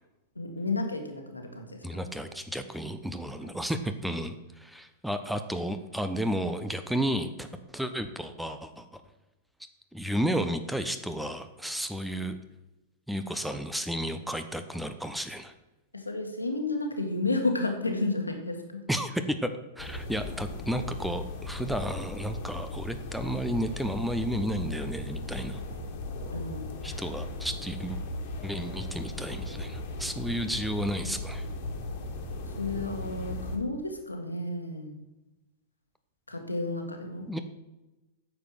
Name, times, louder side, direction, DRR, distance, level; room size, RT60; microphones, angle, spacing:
voice 1, 0.4-2.0 3.4-3.5 15.9-18.9 26.3-26.7 32.5-35.0 36.3-37.3, left 2 dB, 85° left, 4 dB, 1.8 m, -32 dB
voice 2, 1.8-7.5 7.7-9.0 9.9-12.4 13.1-15.5 18.9-19.5 19.8-25.6 26.8-28.0 28.4-31.5 37.3-37.4, equal, ahead, 8 dB, 0.8 m, -32 dB
sound 1, 19.8-33.6, left 2 dB, 50° left, 1.9 m, -37 dB
9.5 x 7.1 x 5.9 m, 1.0 s
figure-of-eight pair, 100°, 0 cm